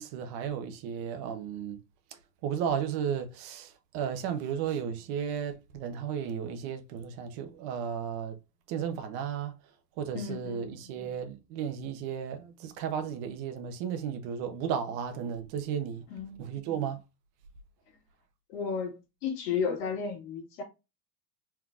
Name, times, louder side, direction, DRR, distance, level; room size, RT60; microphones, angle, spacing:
voice 1, 0.0-1.8 2.4-8.4 8.7-9.5 10.0-16.0 16.4-17.0, right 8 dB, 50° right, 1.1 m, -34 dB
voice 2, 10.1-10.8 16.1-16.4 18.5-20.6, left 6 dB, 70° left, 2.3 m, -33 dB
4.4 x 3.8 x 2.4 m
supercardioid pair, 135°, 49 cm